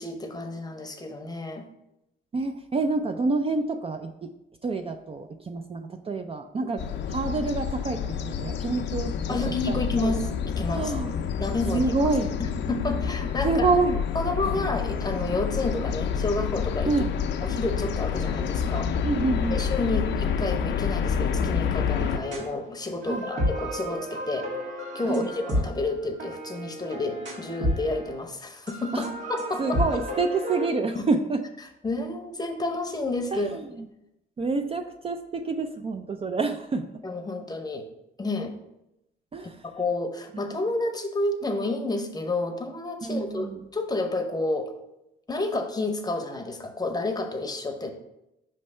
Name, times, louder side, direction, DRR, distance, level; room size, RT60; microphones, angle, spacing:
voice 1, 0.0-1.6 9.3-10.9 11.4-11.9 12.4-13.7 14.1-16.9 17.4-18.9 19.5-24.5 24.9-29.8 30.9-31.0 31.8-33.6 37.0-37.9 38.2-38.5 39.6-44.7 45.3-47.9, left 2 dB, 20° left, 5 dB, 0.7 m, -30 dB
voice 2, 2.3-4.3 4.6-6.8 7.1-10.1 10.7-11.2 11.7-12.3 13.4-14.0 16.9-17.1 19.0-19.6 23.1-23.3 25.0-25.3 28.9-29.1 29.6-31.4 33.3-33.9 34.4-36.9 39.3-39.6 40.3-40.5 43.0-43.6, right 3 dB, 30° right, 6 dB, 0.4 m, -27 dB
sound 1, 6.8-22.2, left 7 dB, 65° left, 0.5 m, -28 dB
sound 2, 21.8-22.5 22.9-28.1 28.7-30.7, equal, 75° right, 1.8 m, -31 dB
5.4 x 3.2 x 5.4 m, 0.87 s
cardioid pair, 90°, 20 cm